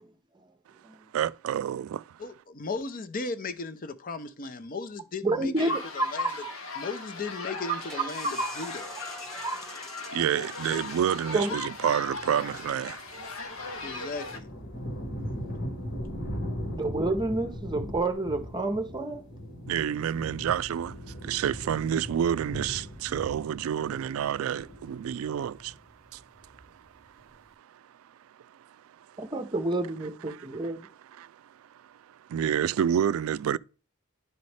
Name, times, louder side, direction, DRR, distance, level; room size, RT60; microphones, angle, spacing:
voice 1, 1.1-2.2 10.1-13.0 19.7-25.8 26.1-27.8 28.5-29.2 30.2-33.6, right 9 dB, 90° right, 0.3 m, -30 dB
voice 2, 2.2-6.4 6.8-8.9 13.8-14.5, left 3 dB, 45° left, 0.6 m, -36 dB
voice 3, 5.2-6.5 8.4-8.5 9.4-9.5 11.3-11.5 16.8-19.2 29.3-30.8, right 2 dB, 20° right, 0.6 m, -29 dB
sound 1, 5.6-14.4, left 3 dB, 80° left, 1.2 m, -38 dB
sound 2, 7.7-13.2, equal, ahead, 1.0 m, -47 dB
sound 3, 13.1-25.9 26.2-26.9, equal, 65° left, 1.6 m, -39 dB
10.5 x 4.1 x 3.3 m
head